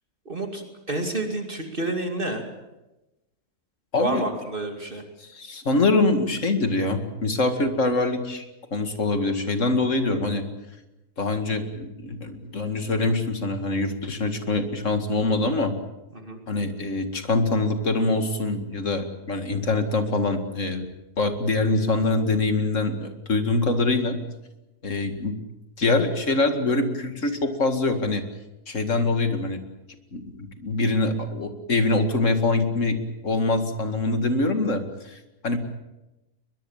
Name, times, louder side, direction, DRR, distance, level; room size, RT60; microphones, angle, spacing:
voice 1, 0.3-2.4 4.0-5.0 16.1-16.4, right 2 dB, 35° right, 4 dB, 2.7 m, -29 dB
voice 2, 3.9-4.3 5.2-8.5 8.7-10.5 11.2-15.7 16.5-20.9 21.2-24.2 24.8-25.4 25.8-28.2 28.7-29.6 30.1-33.0 33.2-35.6, left 2 dB, 50° left, 7 dB, 2.4 m, -24 dB
22.5 x 22.0 x 7.3 m, 1.0 s
omnidirectional pair, 1.7 m